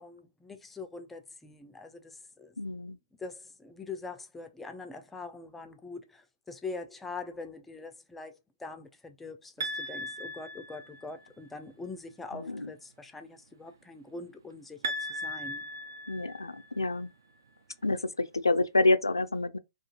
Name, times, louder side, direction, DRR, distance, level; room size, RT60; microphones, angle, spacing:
voice 1, 0.0-2.5 3.2-15.6, left 3 dB, 5° left, 0.4 m, -43 dB
voice 2, 2.6-3.0 12.3-12.7 16.1-17.1 17.8-19.6, left 2 dB, 90° left, 0.4 m, -28 dB
sound 1, 9.6-11.3 14.8-16.9, equal, 65° right, 0.5 m, -37 dB
2.4 x 2.4 x 2.8 m
figure-of-eight pair, 130°, 2 cm